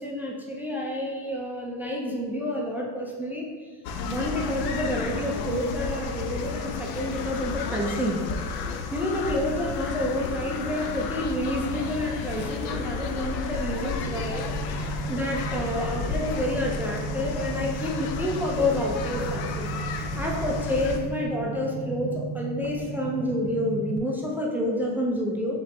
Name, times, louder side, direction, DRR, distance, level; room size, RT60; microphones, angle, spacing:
voice 1, 0.0-3.5 4.1-8.2 8.9-14.5 14.8-25.6, left 1 dB, 5° right, -2 dB, 0.3 m, -29 dB
sound 1, 3.8-21.0, left 5 dB, 75° left, 0.5 m, -32 dB
sound 2, 14.0-24.0, right 4 dB, 90° right, 0.6 m, -35 dB
4.6 x 2.9 x 3.2 m, 1.5 s
cardioid pair, 125°, 38 cm